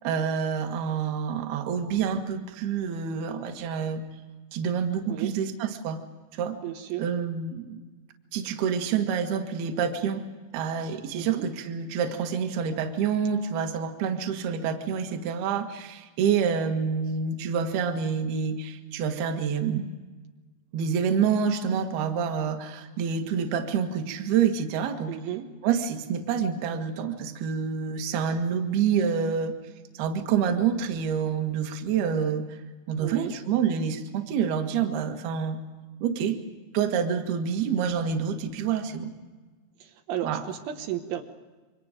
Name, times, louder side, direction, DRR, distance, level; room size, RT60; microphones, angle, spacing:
voice 1, 0.0-4.0 4.5-6.0 6.3-6.6 7.0-7.8 8.3-10.2 10.5-19.9 20.7-25.2 25.6-29.6 29.9-32.6 32.9-35.6 36.0-36.4 36.7-39.1 40.2-40.4, right 7 dB, 60° right, 5 dB, 3.2 m, -27 dB
voice 2, 5.1-5.4 6.6-7.1 11.2-11.5 25.1-25.5 33.0-33.4 39.8-41.2, right 11 dB, 75° right, 4 dB, 3.7 m, -33 dB
28.5 x 24.5 x 5.1 m, 1.3 s
omnidirectional pair, 5.6 m